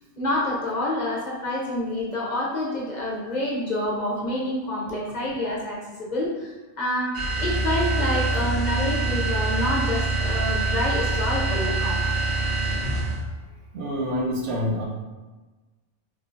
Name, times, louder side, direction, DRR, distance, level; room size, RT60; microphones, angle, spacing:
voice 1, 0.2-12.1, left 1 dB, 45° left, -4 dB, 0.7 m, -28 dB
sound 1, 7.1-13.3, right 3 dB, 60° right, 1.2 m, -25 dB
voice 2, 13.7-14.8, equal, 85° right, -1 dB, 1.1 m, -27 dB
3.5 x 3.2 x 2.5 m, 1.2 s
omnidirectional pair, 1.2 m